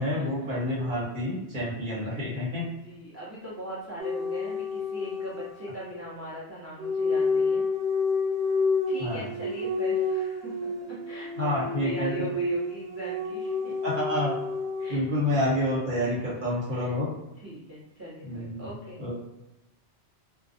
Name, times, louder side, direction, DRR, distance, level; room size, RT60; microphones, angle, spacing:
voice 1, 0.0-2.6 9.0-9.3 11.4-12.2 13.8-14.3 14.9-17.1 18.2-18.7 19.0-19.2, left 1 dB, 45° right, -6 dB, 1.0 m, -28 dB
voice 2, 2.5-7.6 8.9-11.5 11.8-13.8 14.8-15.0 15.3-15.4 16.0-16.1 16.5-17.0 17.4-19.0, equal, 20° right, -8 dB, 0.5 m, -41 dB
sound 1, 4.0-6.0 6.8-15.0, left 3 dB, 75° right, 1.1 m, -29 dB
2.2 x 2.2 x 2.6 m, 0.95 s
omnidirectional pair, 1.2 m